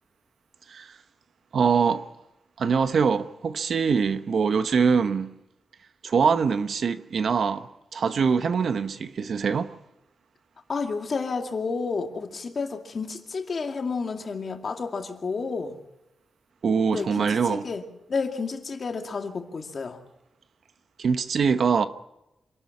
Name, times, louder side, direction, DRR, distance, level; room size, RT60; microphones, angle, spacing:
voice 1, 1.5-2.0 2.6-5.3 6.0-9.7 16.6-17.7 21.0-21.9, right 6 dB, 60° right, 1.0 m, -23 dB
voice 2, 10.7-15.7 16.9-17.8 18.1-20.0, left 4 dB, 45° left, 2.3 m, -30 dB
26.5 x 12.5 x 8.5 m
wide cardioid pair, 150°, 0 cm